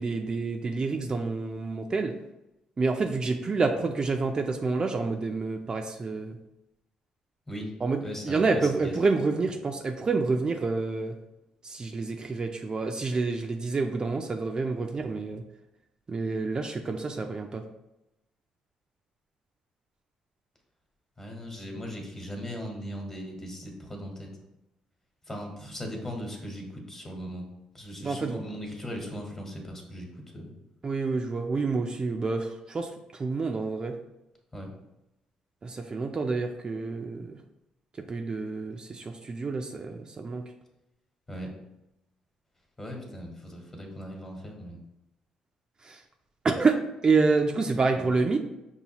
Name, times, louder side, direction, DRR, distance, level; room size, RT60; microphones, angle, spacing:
voice 1, 0.0-2.2 2.8-6.4 7.8-11.2 11.6-15.4 16.1-17.6 28.0-28.4 30.8-34.0 35.6-37.4 38.0-40.5 45.8-46.0 46.4-48.4, right 4 dB, 35° right, 4 dB, 0.4 m, -28 dB
voice 2, 8.0-9.0 21.2-24.3 25.3-27.4 27.7-30.1 30.3-30.5 34.5-34.7 41.3-41.5 42.8-44.8 48.0-48.1, equal, 20° left, 1 dB, 1.2 m, -38 dB
5.5 x 2.4 x 2.9 m, 0.90 s
supercardioid pair, 75°, 2 cm